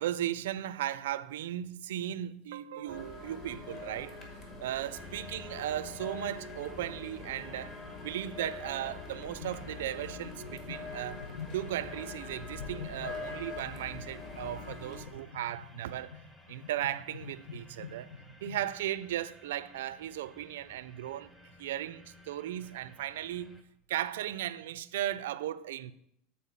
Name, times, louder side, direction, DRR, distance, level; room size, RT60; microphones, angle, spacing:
voice 1, 0.0-4.2 4.6-7.8 8.0-11.3 11.5-16.2 16.5-18.1 18.4-21.3 21.6-23.6 23.9-25.9, right 12 dB, 90° right, 0.4 m, -36 dB
sound 1, 2.9-15.1, left 3 dB, 35° left, 2.0 m, -44 dB
sound 2, 5.0-23.6, left 2 dB, 10° left, 0.8 m, -56 dB
sound 3, 9.4-10.1 10.3-12.1 12.5-18.7, left 5 dB, 80° left, 1.0 m, -47 dB
8.4 x 4.3 x 7.2 m
supercardioid pair, 150°, 0 cm